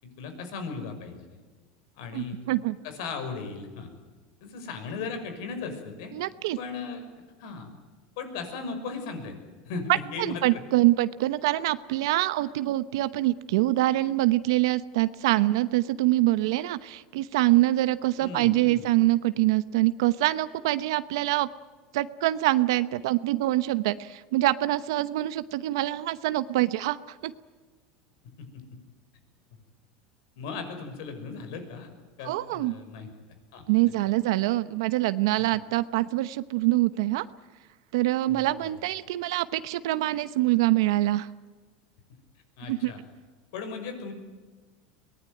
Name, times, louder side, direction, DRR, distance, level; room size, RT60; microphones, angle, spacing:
voice 1, 0.0-1.4 2.0-2.4 2.8-3.9 4.4-6.1 6.6-7.0 7.4-7.7 8.2-9.4 9.7-10.6 18.2-18.8 28.4-28.6 30.4-31.9 32.2-33.1 33.5-33.6 38.3-38.8 42.6-43.0 43.5-44.1, left 4 dB, 75° left, 7 dB, 5.9 m, -37 dB
voice 2, 2.1-2.8 6.1-6.6 10.2-21.5 21.9-27.0 27.2-27.3 32.2-32.7 33.7-37.3 37.9-41.3 42.6-42.9, right 17 dB, 80° right, 13 dB, 0.9 m, -25 dB
23.5 x 19.5 x 9.3 m, 1.4 s
supercardioid pair, 135°, 2 cm